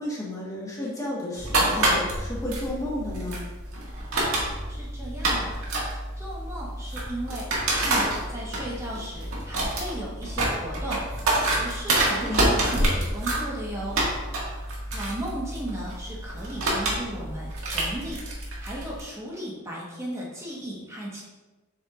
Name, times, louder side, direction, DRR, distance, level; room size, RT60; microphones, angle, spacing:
voice 1, 0.0-3.4 12.2-12.6, left 1 dB, 15° left, -4 dB, 1.3 m, -32 dB
sound 1, 1.4-19.0, right 1 dB, 85° right, 1.9 m, -28 dB
voice 2, 4.7-5.6 6.2-11.0 11.6-14.0 14.9-18.2 18.6-21.2, right 1 dB, 15° right, -5 dB, 1.3 m, -36 dB
7.4 x 6.1 x 2.5 m, 1.2 s
head